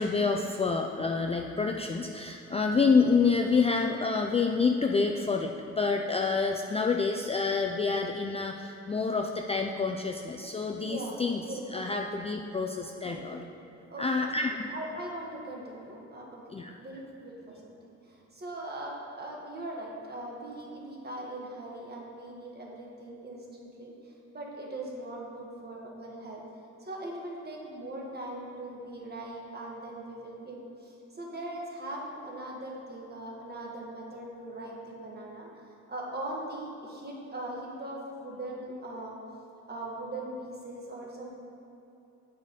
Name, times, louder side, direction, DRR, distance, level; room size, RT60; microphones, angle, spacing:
voice 1, 0.0-11.4 11.7-13.4 14.0-14.7 16.5-16.7, left 4 dB, 20° left, 3 dB, 0.4 m, -28 dB
voice 2, 10.7-11.2 11.4-11.9 13.0-13.4 13.9-14.1 14.7-17.7 18.0-26.4 26.8-35.5 35.9-39.2 39.7-41.3, right 1 dB, 30° right, -2 dB, 1.7 m, -40 dB
8.1 x 5.0 x 5.3 m, 2.9 s
cardioid pair, 90°, 30 cm